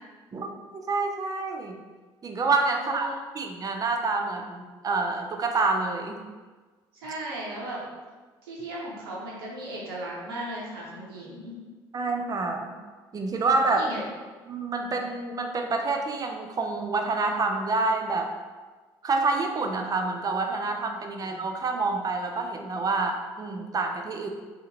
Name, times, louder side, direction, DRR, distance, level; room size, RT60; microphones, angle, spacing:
voice 1, 0.3-1.8 2.2-6.2 11.9-12.7 13.1-13.8 14.5-18.3 19.0-24.3, right 3 dB, 30° right, 4 dB, 0.4 m, -27 dB
voice 2, 2.7-3.2 6.9-7.8 8.4-11.6 13.7-14.0 14.8-15.0 21.2-21.3, right 1 dB, 90° right, -4 dB, 0.6 m, -37 dB
2.7 x 2.4 x 2.8 m, 1.3 s
hypercardioid pair, 55°, 12 cm